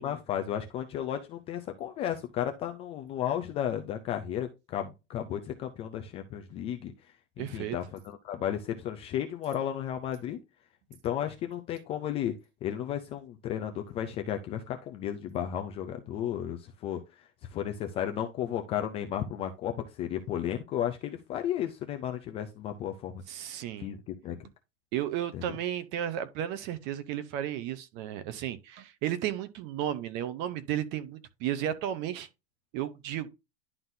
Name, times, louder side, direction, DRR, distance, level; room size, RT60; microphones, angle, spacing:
voice 1, 0.0-6.9 7.4-10.4 11.0-12.3 12.6-23.2 23.8-24.5 25.3-25.4, left 10 dB, 20° left, 0.4 m, -34 dB
voice 2, 7.4-7.8 23.3-23.9 24.9-32.3 32.7-33.3, right 11 dB, 35° right, 0.8 m, -33 dB
11.0 x 3.9 x 2.6 m
supercardioid pair, 170°, 32 cm